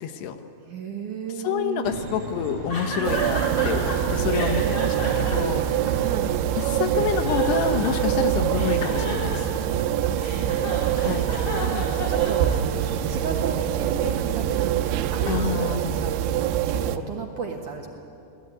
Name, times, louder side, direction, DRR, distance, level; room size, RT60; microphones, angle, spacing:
voice 1, 0.0-0.4 1.4-5.6 6.6-9.4 11.0-11.2 15.3-16.1, left 8 dB, 75° left, 8 dB, 3.0 m, -28 dB
voice 2, 0.7-2.0 6.0-6.4 10.1-12.5 13.1-17.9, right 5 dB, 60° right, 2 dB, 2.3 m, -34 dB
sound 1, 1.8-15.1, right 3 dB, 45° right, 4.1 m, -37 dB
sound 2, 2.7-4.0 4.3-6.4 6.9-8.2 8.5-12.8, left 2 dB, 35° left, 5.8 m, -33 dB
sound 3, 3.0-17.0, right 11 dB, 90° right, 3.1 m, -25 dB
26.0 x 18.5 x 9.5 m, 2.6 s
omnidirectional pair, 5.1 m